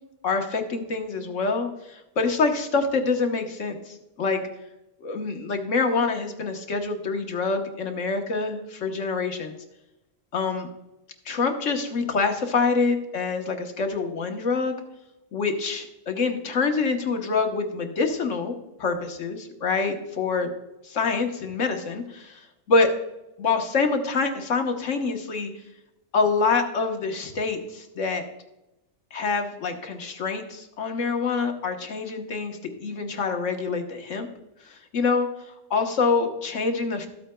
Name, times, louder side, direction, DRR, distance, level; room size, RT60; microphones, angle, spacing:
voice 1, 0.2-4.4 5.0-9.6 10.3-10.7 11.2-14.7 15.3-20.5 20.8-22.9 23.4-25.5 26.1-28.2 29.1-34.3 34.6-35.3 35.7-37.1, left 4 dB, 65° left, 4 dB, 1.4 m, -26 dB
14.0 x 8.5 x 2.2 m, 0.94 s
omnidirectional pair, 1.4 m